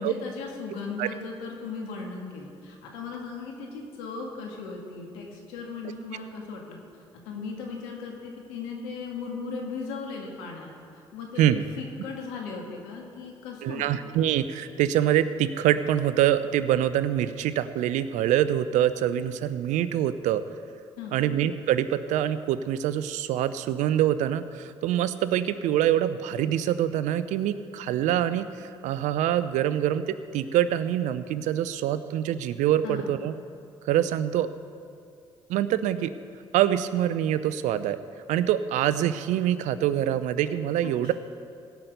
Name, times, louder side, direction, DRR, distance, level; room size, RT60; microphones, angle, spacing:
voice 1, 0.0-6.8 7.2-10.7 11.1-11.5 11.8-14.1 21.0-21.2 32.8-33.2 40.8-40.9, left 4 dB, 90° left, 0 dB, 2.0 m, -37 dB
voice 2, 13.6-20.4 21.1-33.3 33.9-34.5 35.5-36.1 36.5-38.0 38.3-41.1, right 11 dB, 75° right, 13 dB, 0.6 m, -25 dB
17.0 x 5.9 x 8.1 m, 2.3 s
supercardioid pair, 55°, 13 cm